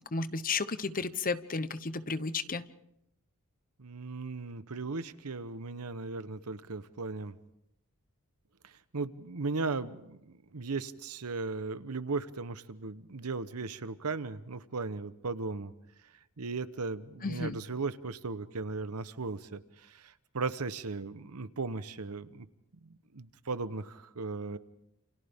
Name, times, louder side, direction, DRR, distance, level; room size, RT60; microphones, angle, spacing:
voice 1, 0.1-2.6 17.2-17.6, left 4 dB, 40° left, 13 dB, 0.9 m, -33 dB
voice 2, 3.8-7.3 8.6-15.7 16.4-22.5 22.8-24.6, right 3 dB, 85° right, 13 dB, 1.0 m, -37 dB
28.5 x 28.5 x 3.6 m, 0.81 s
head